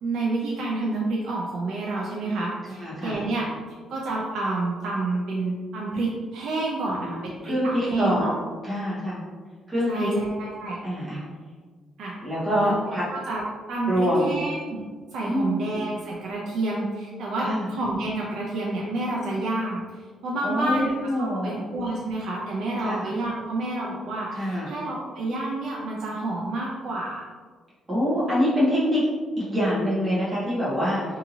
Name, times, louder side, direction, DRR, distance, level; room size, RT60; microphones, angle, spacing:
voice 1, 0.0-3.4 3.9-7.2 7.4-8.3 9.9-10.8 12.0-12.2 12.6-13.4 13.7-14.8 15.1-27.3, right 2 dB, 65° right, -4 dB, 0.4 m, -29 dB
voice 2, 2.8-3.2 6.8-7.2 7.4-8.3 8.6-9.2 9.7-10.1 10.8-11.2 12.2-13.0 13.8-14.3 15.3-15.5 17.4-17.7 20.4-21.6 22.8-23.1 24.3-24.7 27.9-29.1 29.4-31.0, equal, 15° right, -8 dB, 0.9 m, -25 dB
2.7 x 2.6 x 2.7 m, 1.5 s
cardioid pair, 165°, 0 cm